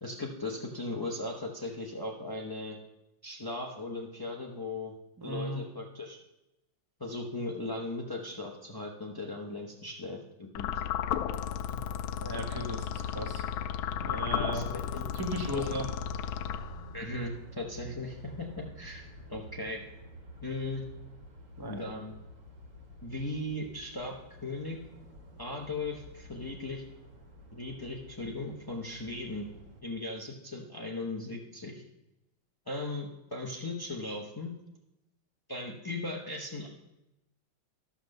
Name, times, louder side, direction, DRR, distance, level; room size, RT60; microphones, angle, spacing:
voice 1, 0.0-2.8 3.2-4.9 5.2-6.2 7.0-10.7 14.5-14.8 15.5-15.8 16.9-19.8 20.4-20.8 21.6-22.2 23.0-24.2 24.4-24.8 25.4-26.8 27.5-29.5 29.8-31.8 32.7-34.5 35.5-36.7, left 2 dB, 30° left, 0 dB, 0.4 m, -37 dB
voice 2, 5.2-5.6 12.2-13.4 13.9-14.7 14.9-15.9 21.6-21.8, right 1 dB, 15° right, 3 dB, 1.0 m, -36 dB
sound 1, 10.6-17.1, left 9 dB, 85° left, 1.4 m, -34 dB
sound 2, 12.1-29.8, right 1 dB, 40° right, 1.9 m, -50 dB
13.0 x 6.0 x 6.6 m, 0.93 s
omnidirectional pair, 2.2 m